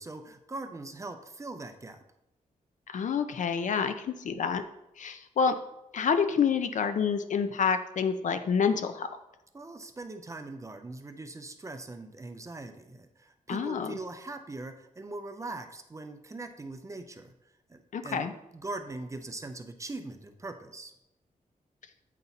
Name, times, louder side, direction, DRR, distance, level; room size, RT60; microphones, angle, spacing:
voice 1, 0.0-2.0 9.5-17.3 17.7-18.3 18.5-20.9, right 2 dB, 20° right, 8 dB, 0.4 m, -41 dB
voice 2, 2.9-4.6 5.0-5.5 5.9-9.1 13.5-14.0 17.9-18.3, left 6 dB, 60° left, 9 dB, 0.5 m, -28 dB
8.2 x 4.0 x 4.0 m, 0.88 s
wide cardioid pair, 175°, 14 cm